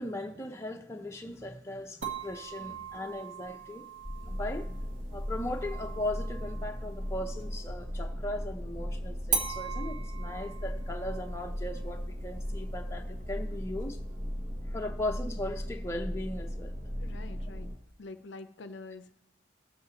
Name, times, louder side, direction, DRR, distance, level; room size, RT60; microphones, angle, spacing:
voice 1, 0.0-3.9 4.3-4.7 5.1-14.0 14.7-16.7, left 1 dB, 15° left, 0.6 m, -38 dB
sound 1, 2.0-7.6 9.3-14.3, right 5 dB, 65° right, 1.3 m, -40 dB
sound 2, 4.0-17.8, equal, 30° right, 1.0 m, -37 dB
voice 2, 17.0-17.7 18.0-19.2, left 3 dB, 60° left, 0.5 m, -46 dB
17.5 x 7.2 x 2.9 m
head